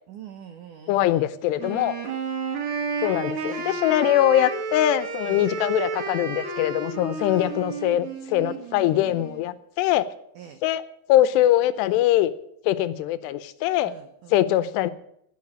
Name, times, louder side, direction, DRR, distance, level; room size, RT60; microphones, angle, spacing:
voice 1, 0.1-1.3 3.4-4.2 5.3-5.5 7.2-7.5 10.4-10.6 13.9-14.4, right 9 dB, 90° right, 8 dB, 1.7 m, -45 dB
voice 2, 0.9-1.9 3.0-10.1 10.6-10.8 11.1-12.3 12.6-13.9 14.3-14.9, left 13 dB, 80° left, 14 dB, 2.8 m, -22 dB
Wind instrument woodwind instrument, 1.5-9.4, right 5 dB, 60° right, 2.1 m, -32 dB
10.5 x 9.2 x 9.6 m, 0.74 s
omnidirectional pair, 4.9 m